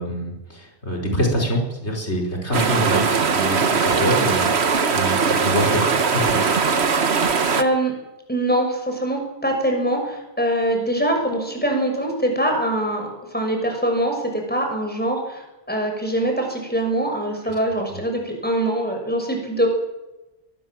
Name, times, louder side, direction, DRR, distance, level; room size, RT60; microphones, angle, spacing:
voice 1, 0.0-3.0 3.3-3.6 3.9-4.5 4.9-6.4, equal, 75° left, 0 dB, 5.4 m, -24 dB
sound 1, 2.5-7.6, right 5 dB, 70° right, 1.6 m, -20 dB
voice 2, 7.1-7.9 8.3-19.7, right 1 dB, 10° left, 3 dB, 6.6 m, -23 dB
23.0 x 20.0 x 7.5 m, 0.99 s
omnidirectional pair, 1.1 m